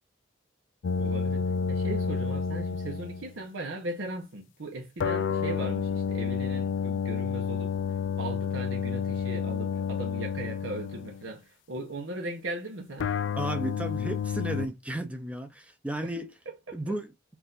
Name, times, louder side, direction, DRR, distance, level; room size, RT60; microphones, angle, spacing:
sound 1, 0.8-3.3 5.0-11.3 13.0-14.7, left 6 dB, 70° left, 0.4 m, -30 dB
voice 1, 1.0-1.4 1.7-7.7 8.2-13.1 16.0-16.2 16.5-16.8, right 2 dB, 90° right, 0.9 m, -38 dB
voice 2, 13.4-16.3 16.7-17.1, right 1 dB, 5° right, 0.6 m, -33 dB
4.6 x 2.6 x 3.9 m
head